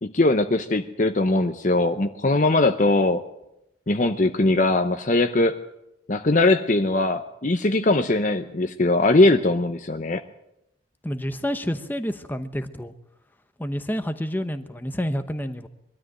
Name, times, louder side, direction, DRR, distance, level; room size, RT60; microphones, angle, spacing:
voice 1, 0.0-3.2 3.9-5.6 6.1-10.2, left 2 dB, 40° left, 7 dB, 0.8 m, -20 dB
voice 2, 11.0-12.9 13.6-15.7, equal, 10° left, 8 dB, 0.9 m, -29 dB
22.0 x 13.0 x 9.1 m, 0.86 s
head